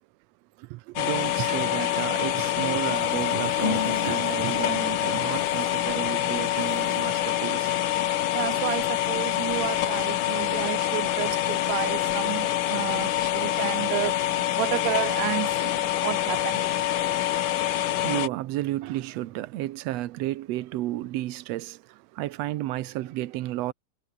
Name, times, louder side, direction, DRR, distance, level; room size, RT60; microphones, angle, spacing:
sound 1, 1.0-18.3, left 12 dB, 85° left, 2.9 m, -26 dB
voice 1, 1.0-7.8 12.7-13.1 13.6-13.9 17.6-23.7, right 15 dB, 70° right, 1.8 m, -32 dB
sound 2, 2.9-7.8, left 3 dB, 30° left, 5.3 m, -51 dB
Harp, 3.6-11.1 11.3-12.5 12.7-13.4, left 5 dB, 50° left, 4.5 m, -39 dB
voice 2, 8.3-14.1 14.6-15.5 16.0-16.5, right 20 dB, 85° right, 1.5 m, -31 dB
omnidirectional pair, 3.6 m